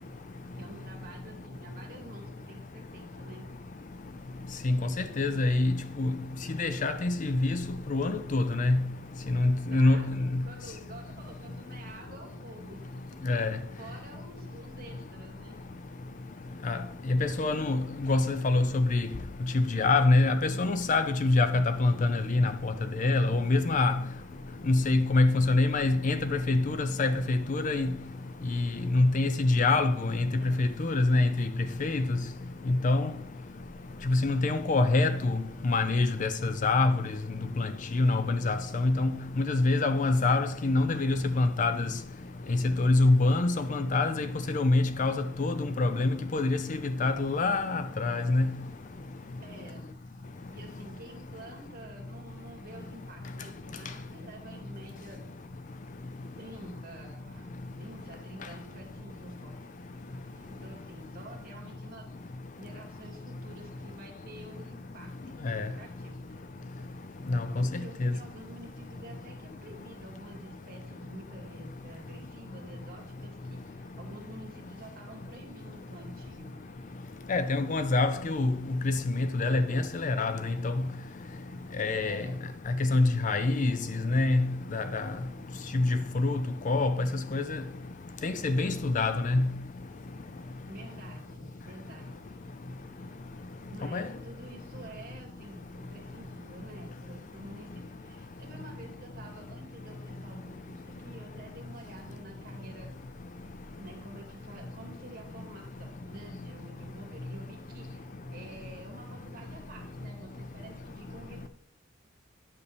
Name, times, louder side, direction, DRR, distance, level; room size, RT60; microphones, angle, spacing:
voice 1, 0.5-3.5 9.6-13.3 13.8-15.6 30.4-30.6 49.4-49.9 50.5-55.3 56.1-59.6 60.4-62.1 62.6-66.2 67.6-76.6 82.0-82.5 88.9-89.4 90.7-92.2 92.4-92.5 93.7-103.0 103.8-111.5, right 1 dB, 45° right, 2.3 m, -49 dB
voice 2, 4.6-6.2 6.6-7.6 7.9-8.8 9.4-10.4 13.2-13.6 16.7-16.8 17.1-19.1 19.5-22.7 23.0-24.0 24.7-27.9 28.5-28.7 28.9-31.5 31.8-32.2 32.7-33.1 34.1-37.0 37.6-37.7 37.9-41.9 42.5-48.5 65.4-65.7 67.3-67.7 68.0-68.1 77.3-80.7 81.8-82.2 82.8-83.8 84.0-84.5 84.7-85.1 85.7-85.9 86.2-87.6 88.2-89.5 93.9-94.0, left 2 dB, 40° left, 0.5 m, -26 dB
9.5 x 6.7 x 3.4 m
head